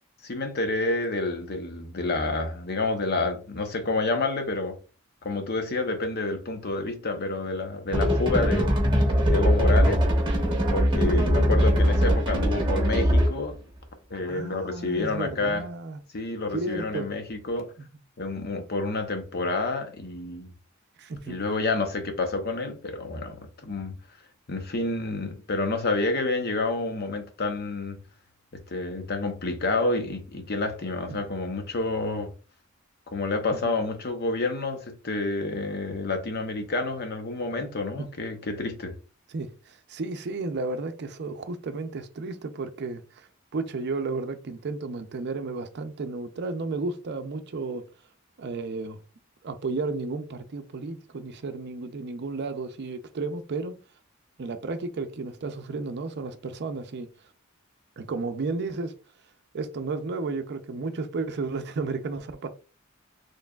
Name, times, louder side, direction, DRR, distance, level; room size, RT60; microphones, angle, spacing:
voice 1, 0.2-4.8 5.2-8.7 9.3-10.0 10.7-13.6 14.1-15.7 16.1-17.7 18.2-20.5 21.3-24.0 24.5-28.0 28.5-32.3 33.1-38.9, left 2 dB, 50° left, 0.8 m, -29 dB
sound 1, 7.9-13.4, equal, 25° right, 1.1 m, -21 dB
voice 2, 14.3-16.0 16.5-17.1 17.8-17.9 21.0-21.4 31.1-31.3 33.6-33.7 38.0-38.1 39.3-47.9 48.4-49.0 49.4-53.8 54.4-57.1 58.0-58.9 59.5-62.5, right 3 dB, 55° right, 0.5 m, -33 dB
4.6 x 3.1 x 2.3 m
head